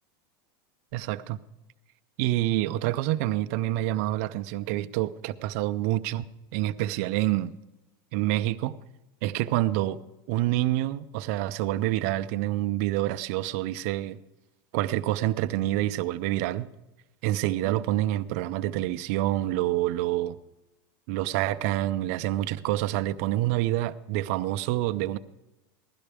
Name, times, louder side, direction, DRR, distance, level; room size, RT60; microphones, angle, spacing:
voice 1, 0.9-1.4 2.2-7.5 8.1-8.7 9.2-10.0 10.3-14.2 14.7-16.7 17.2-20.4 21.1-25.2, right 15 dB, 40° right, 10 dB, 0.4 m, -27 dB
16.0 x 12.5 x 3.4 m, 0.99 s
supercardioid pair, 170°, 12 cm